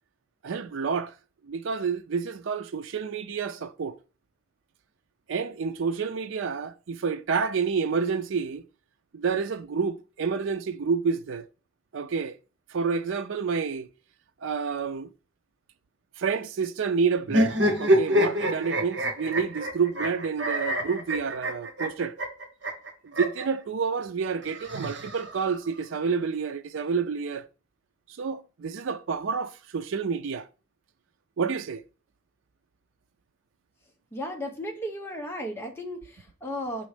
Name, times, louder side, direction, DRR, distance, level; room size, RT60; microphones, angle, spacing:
voice 1, 0.4-1.1 1.4-4.0 5.3-8.6 9.1-11.5 11.9-12.4 12.7-13.9 14.4-15.1 16.2-22.2 23.0-27.5 28.1-30.5 31.4-31.8, right 5 dB, 80° right, 0.4 m, -29 dB
sound 1, 17.3-23.5 24.4-25.6, equal, 65° right, 1.4 m, -26 dB
voice 2, 34.1-36.9, equal, 10° left, 1.1 m, -35 dB
6.1 x 3.1 x 4.9 m
head